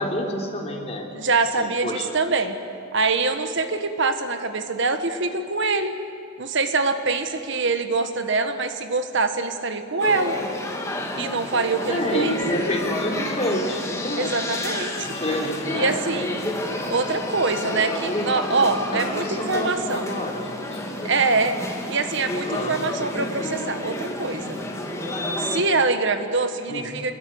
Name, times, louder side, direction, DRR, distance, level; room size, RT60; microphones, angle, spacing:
voice 1, 0.0-1.1 1.6-2.2 11.9-14.5 15.0-15.9 18.9-20.9 22.4-22.8 26.7-26.9, equal, 30° left, 0 dB, 3.7 m, -28 dB
voice 2, 1.2-2.5 2.9-5.9 6.4-10.4 11.2-12.4 14.2-15.2 15.7-16.3 16.9-20.1 21.0-21.6 21.9-24.6 25.3-27.1, right 3 dB, 55° right, 8 dB, 1.5 m, -24 dB
sound 1, 10.0-25.6, left 1 dB, 15° left, 2.7 m, -30 dB
27.5 x 21.5 x 9.5 m, 2.6 s
head